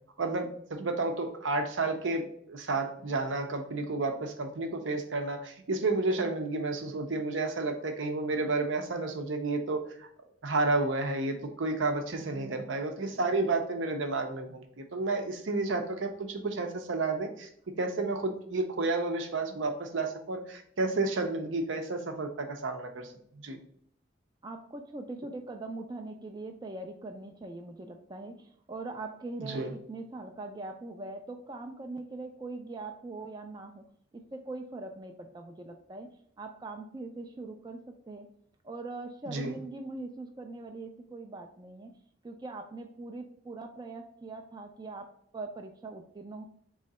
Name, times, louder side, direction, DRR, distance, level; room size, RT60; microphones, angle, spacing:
voice 1, 0.2-10.1 10.4-17.5 17.8-23.6 29.4-29.7 39.3-39.6, right 3 dB, 80° right, 5 dB, 0.7 m, -31 dB
voice 2, 12.2-12.5 24.4-33.8 34.3-36.1 36.4-37.8 38.1-38.3 38.6-41.9 42.2-46.4, right 2 dB, 20° right, 4 dB, 0.3 m, -41 dB
3.7 x 3.1 x 4.1 m, 0.66 s
head